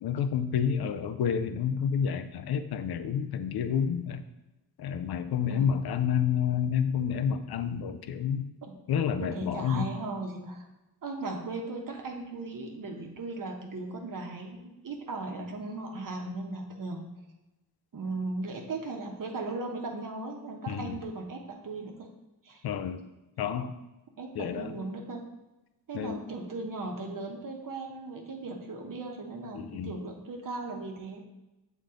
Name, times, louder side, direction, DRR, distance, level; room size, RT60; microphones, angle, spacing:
voice 1, 0.0-4.2 4.8-8.4 8.9-9.9 20.7-20.9 22.6-23.0 23.4-23.8 24.4-24.7 25.9-26.2 29.5-29.9, left 8 dB, 80° left, 9 dB, 0.6 m, -29 dB
voice 2, 9.2-10.6 11.0-17.1 17.9-22.1 22.4-22.6 24.2-25.2 25.9-31.2, right 3 dB, 60° right, 1 dB, 1.1 m, -37 dB
7.1 x 3.6 x 3.7 m, 1.0 s
cardioid pair, 80°, 38 cm